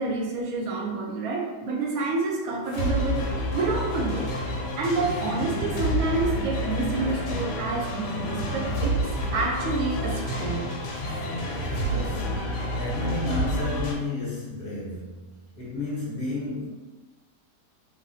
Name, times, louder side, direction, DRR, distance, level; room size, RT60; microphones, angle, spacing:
voice 1, 0.0-3.2 3.5-4.3 4.8-9.0 9.3-10.8, right 3 dB, 70° right, 0 dB, 0.9 m, -28 dB
sound 1, 2.7-13.9, equal, 85° left, 1.3 m, -29 dB
voice 2, 11.9-16.7, left 2 dB, 45° left, -7 dB, 0.8 m, -32 dB
3.4 x 2.3 x 2.6 m, 1.2 s
omnidirectional pair, 1.8 m